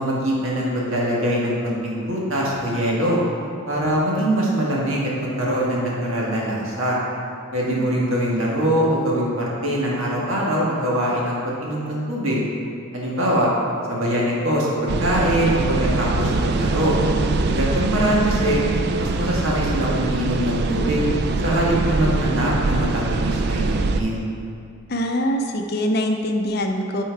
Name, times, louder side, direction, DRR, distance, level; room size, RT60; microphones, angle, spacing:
voice 1, 0.0-3.2 3.6-7.0 7.5-12.4 12.9-13.5 13.9-16.9 17.5-18.6 19.0-21.1 21.4-24.2, equal, 80° right, -4 dB, 1.6 m, -23 dB
sound 1, 14.9-24.0, right 3 dB, 50° right, 0.3 m, -23 dB
voice 2, 24.9-27.0, equal, 50° left, 4 dB, 0.6 m, -23 dB
8.2 x 4.5 x 4.6 m, 2.3 s
head